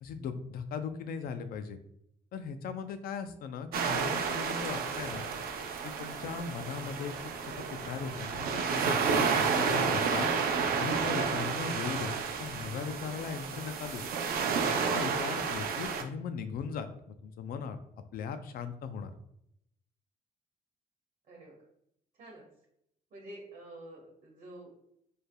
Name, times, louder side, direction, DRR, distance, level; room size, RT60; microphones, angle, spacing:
voice 1, 0.0-1.8 2.3-5.3 5.8-7.1 7.4-10.3 10.8-14.0 14.7-17.8 18.1-19.1, left 6 dB, 80° left, 9 dB, 0.5 m, -38 dB
sound 1, 3.7-16.0, right 5 dB, 85° right, 0.5 m, -31 dB
voice 2, 21.3-21.6 22.1-22.4 23.1-24.8, right 1 dB, 55° right, -3 dB, 1.2 m, -49 dB
4.5 x 3.3 x 2.2 m, 0.75 s
cardioid pair, 140°, 15 cm